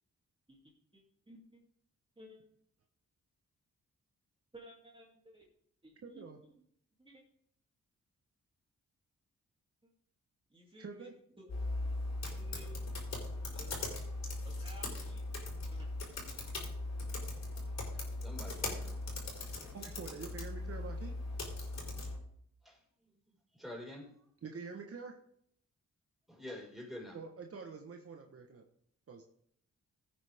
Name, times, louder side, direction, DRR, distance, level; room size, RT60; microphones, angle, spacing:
voice 1, 0.5-1.6 2.2-2.4 4.5-5.5 5.8-6.2 7.0-7.2 10.5-11.1 11.4-11.7 12.2-12.8 13.1-13.8 14.4-15.2 15.7-16.3, right 1 dB, 20° right, -3 dB, 2.9 m, -56 dB
voice 2, 6.0-6.4 10.8-11.1 19.7-21.1 24.4-25.2 27.1-28.7 29.1-29.2, right 5 dB, 50° right, 3 dB, 1.4 m, -46 dB
sound 1, 11.5-22.2, left 2 dB, 65° left, 4.6 m, -39 dB
voice 3, 17.9-19.0 22.6-22.8 23.6-24.1 26.3-27.2, left 1 dB, ahead, -3 dB, 5.2 m, -47 dB
16.5 x 9.0 x 3.6 m, 0.68 s
cardioid pair, 90°, 29 cm